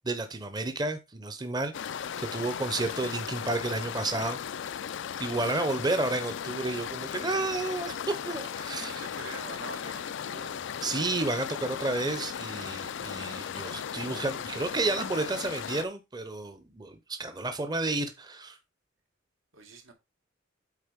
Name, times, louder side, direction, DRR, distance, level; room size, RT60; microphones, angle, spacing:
voice 1, 0.0-1.7 2.2-4.4 5.2-9.0 10.8-18.6, right 2 dB, 20° right, 0.8 m, -31 dB
sound 1, 1.7-15.8, left 8 dB, 65° left, 0.4 m, -36 dB
voice 2, 8.7-10.6 19.5-19.9, right 3 dB, 80° right, 2.0 m, -45 dB
8.4 x 3.9 x 5.2 m
head